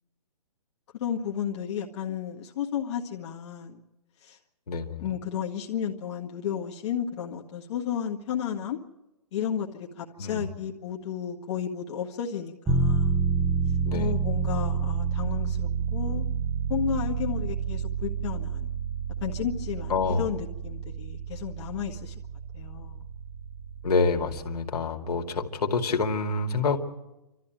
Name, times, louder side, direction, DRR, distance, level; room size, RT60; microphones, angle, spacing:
voice 1, 1.0-3.8 4.2-4.4 5.0-8.8 9.3-13.1 13.9-16.3 16.7-18.7 19.2-22.2 22.5-23.1, left 8 dB, 45° left, -1 dB, 1.7 m, -33 dB
voice 2, 4.7-5.1 10.2-10.5 13.9-14.2 19.9-20.3 23.8-26.8, left 4 dB, 80° left, 3 dB, 2.3 m, -27 dB
sound 1, 12.7-24.5, right 6 dB, 10° right, 1.0 m, -29 dB
28.0 x 13.5 x 9.1 m, 1.0 s
hypercardioid pair, 155°, 20 cm